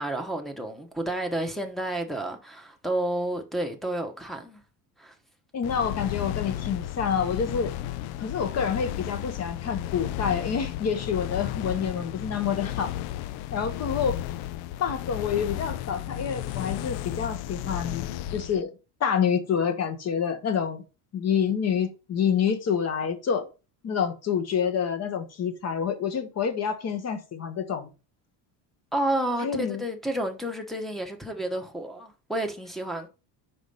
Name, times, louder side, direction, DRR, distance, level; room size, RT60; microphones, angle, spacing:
voice 1, 0.0-4.6 5.0-5.1 28.9-33.1, right 1 dB, ahead, 1.0 m, -30 dB
voice 2, 5.5-7.7 8.2-12.9 13.5-14.2 14.8-18.7 19.0-20.8 21.1-23.5 23.8-27.9 29.4-29.8, left 7 dB, 35° left, 1.3 m, -27 dB
sound 1, 5.6-18.6, left 13 dB, 60° left, 0.5 m, -33 dB
5.1 x 5.1 x 5.4 m
cardioid pair, 140°, 45 cm